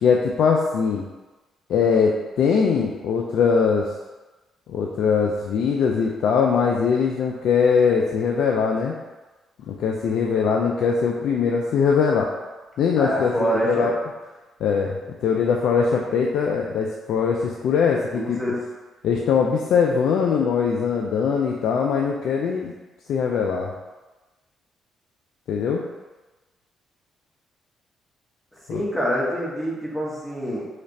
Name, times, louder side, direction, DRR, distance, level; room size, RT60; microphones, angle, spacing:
voice 1, 0.0-1.0 1.7-3.9 4.7-8.9 9.7-12.3 12.8-13.9 14.6-18.4 19.0-22.7 23.1-23.7 25.5-25.8 28.7-28.8, left 6 dB, 75° left, 0 dB, 0.3 m, -21 dB
voice 2, 13.0-13.9 18.1-18.6 28.7-30.6, equal, 10° left, -6 dB, 1.3 m, -25 dB
3.1 x 2.4 x 4.0 m, 1.2 s
cardioid pair, 80°, 0 cm